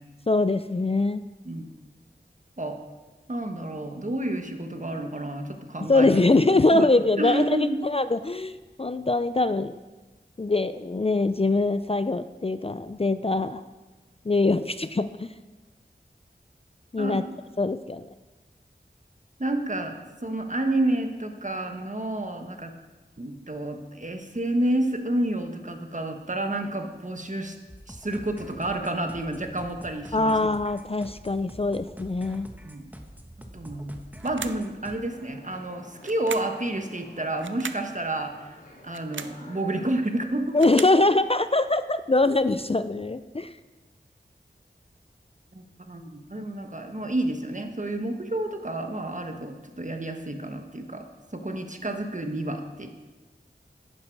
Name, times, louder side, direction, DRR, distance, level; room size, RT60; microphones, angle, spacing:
voice 1, 0.3-1.2 5.8-9.7 10.4-13.6 14.3-15.3 16.9-17.2 17.6-18.1 30.1-32.5 40.5-43.5, left 2 dB, 30° left, 12 dB, 0.4 m, -23 dB
voice 2, 3.3-6.1 6.7-6.9 7.2-7.8 17.0-17.2 19.4-22.7 23.2-27.6 27.9-30.3 32.6-32.8 33.5-40.6 45.5-51.0 51.3-52.9, right 1 dB, 40° right, 4 dB, 1.3 m, -30 dB
sound 1, 27.7-35.0, right 1 dB, 10° right, 1.2 m, -45 dB
sound 2, 34.2-34.7 36.0-36.6 37.4-37.9 38.8-39.4 40.3-41.0, right 6 dB, 85° right, 0.5 m, -38 dB
sound 3, 35.1-40.7, left 1 dB, 45° left, 3.4 m, -51 dB
11.0 x 10.0 x 4.7 m, 1.2 s
wide cardioid pair, 40°, 19 cm